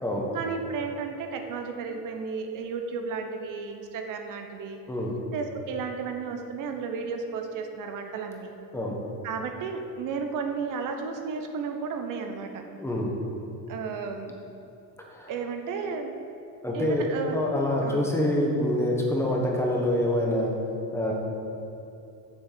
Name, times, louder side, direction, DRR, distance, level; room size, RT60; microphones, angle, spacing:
voice 1, 0.3-4.8 5.3-8.5 9.2-12.6 13.7-14.3 15.3-16.2 16.7-17.4 17.8-18.1, right 5 dB, 60° right, 5 dB, 0.9 m, -33 dB
voice 2, 12.8-13.1 15.1-15.3 16.6-20.5 20.9-21.1, left 1 dB, 5° left, -2 dB, 1.1 m, -26 dB
7.5 x 6.3 x 7.4 m, 2.8 s
cardioid pair, 160°, 36 cm